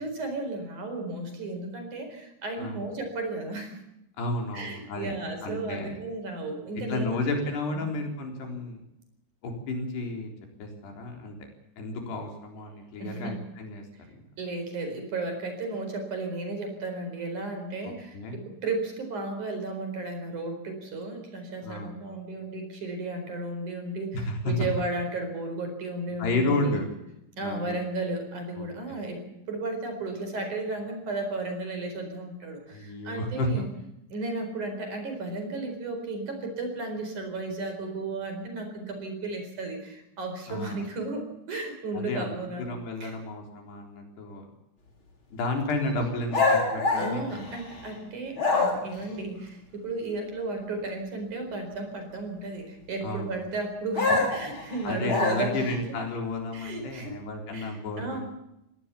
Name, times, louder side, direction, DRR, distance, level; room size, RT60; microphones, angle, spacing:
voice 1, 0.0-3.8 4.5-7.2 7.7-7.9 13.0-13.4 14.4-26.8 27.4-33.7 34.1-42.7 43.0-43.1 47.0-55.7 56.5-57.2 57.5-58.2, right 2 dB, 45° right, 6 dB, 5.6 m, -34 dB
voice 2, 4.2-5.1 5.4-6.0 6.9-8.8 9.4-10.3 10.6-11.4 11.8-13.8 14.1-14.2 17.8-18.4 21.6-22.0 24.1-24.7 26.2-26.9 27.4-27.8 28.6-29.0 32.7-33.5 40.5-40.8 41.9-44.4 45.3-47.4 53.0-53.4 54.8-58.2, left 2 dB, 70° left, 2 dB, 5.9 m, -32 dB
sound 1, 46.3-47.9 48.4-49.0 54.0-55.8, left 3 dB, 30° left, 4.3 m, -25 dB
21.0 x 18.5 x 7.1 m, 0.85 s
omnidirectional pair, 5.0 m